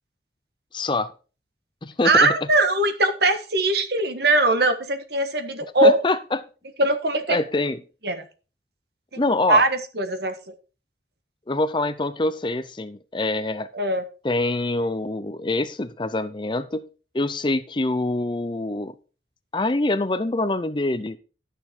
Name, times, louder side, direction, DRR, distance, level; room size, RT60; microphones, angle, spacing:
voice 1, 0.7-1.1 1.8-2.3 5.8-6.4 7.3-7.8 9.2-9.6 11.5-13.7 14.2-16.8 17.1-18.9 19.5-21.2, left 2 dB, 25° left, 13 dB, 0.5 m, -25 dB
voice 2, 2.0-6.0 6.8-7.4 8.0-8.2 9.1-9.2 9.5-9.7 10.0-10.3 13.7-14.0, right 2 dB, 60° right, 8 dB, 1.5 m, -20 dB
12.0 x 6.7 x 4.4 m, 0.35 s
head